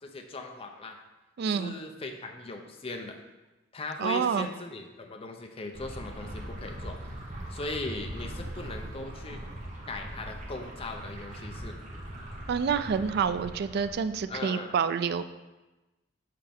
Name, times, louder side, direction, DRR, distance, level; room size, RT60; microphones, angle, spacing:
voice 1, 0.0-1.0 1.5-3.2 3.7-7.0 7.5-9.4 9.9-11.8 14.3-14.7, left 2 dB, 30° left, 3 dB, 0.6 m, -39 dB
voice 2, 1.4-1.7 4.0-4.5 12.5-15.2, right 6 dB, 55° right, 12 dB, 0.3 m, -28 dB
sound 1, 5.7-14.3, right 1 dB, 40° right, 1.1 m, -41 dB
7.6 x 4.4 x 3.5 m, 1.1 s
head